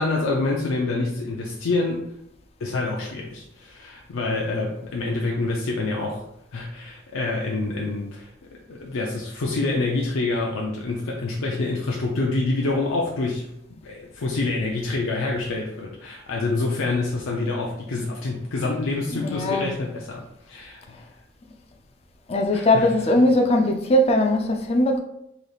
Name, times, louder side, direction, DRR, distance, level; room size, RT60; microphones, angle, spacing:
voice 1, 0.0-2.0 2.6-6.2 6.5-8.3 8.7-13.5 13.8-21.0 22.5-22.9, left 3 dB, 90° left, 0.5 m, -27 dB
voice 2, 19.2-19.7 22.3-25.0, left 1 dB, 30° left, 0.4 m, -20 dB
4.0 x 3.3 x 2.3 m
head